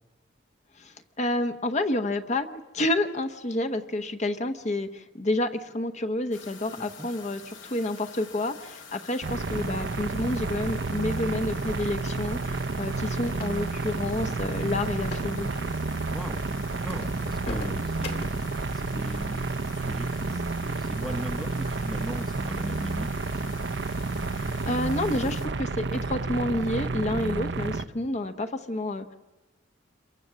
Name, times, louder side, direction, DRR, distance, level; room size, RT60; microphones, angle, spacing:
voice 1, 0.8-15.7 24.3-29.1, left 1 dB, 35° left, 8 dB, 1.0 m, -29 dB
sound 1, 6.3-25.5, left 5 dB, 85° left, 2.9 m, -47 dB
voice 2, 6.8-7.1 16.1-18.4 18.7-23.1, equal, ahead, 8 dB, 0.9 m, -39 dB
sound 2, 9.2-27.8, right 3 dB, 60° right, 0.8 m, -30 dB
sound 3, 12.4-13.8 15.0-15.3 15.6-15.8 16.3-16.4 16.9-18.5, left 2 dB, 55° left, 2.4 m, -39 dB
27.5 x 23.0 x 7.5 m, 1.1 s
head